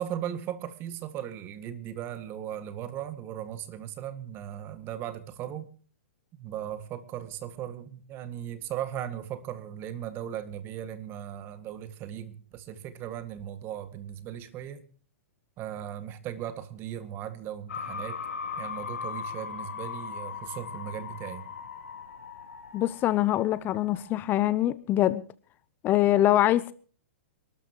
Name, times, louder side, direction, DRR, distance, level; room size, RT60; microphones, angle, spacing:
voice 1, 0.0-5.7 6.4-14.9 15.6-18.2 18.6-21.5, right 10 dB, 30° right, 1.9 m, -37 dB
sound 1, 17.7-24.2, left 6 dB, 80° left, 3.4 m, -39 dB
voice 2, 22.7-25.2 25.8-26.7, left 13 dB, 30° left, 0.7 m, -24 dB
27.0 x 13.0 x 3.0 m
hypercardioid pair, 130°, 7 cm